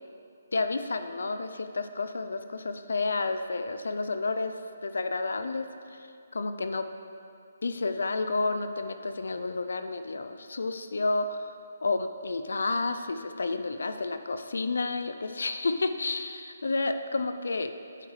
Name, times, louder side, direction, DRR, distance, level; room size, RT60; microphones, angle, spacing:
voice 1, 0.5-4.5 4.8-5.6 5.9-6.1 6.3-6.8 7.6-17.7, left 3 dB, 75° left, 9 dB, 0.4 m, -30 dB
8.9 x 7.3 x 3.2 m, 2.4 s
hypercardioid pair, 150°, 0 cm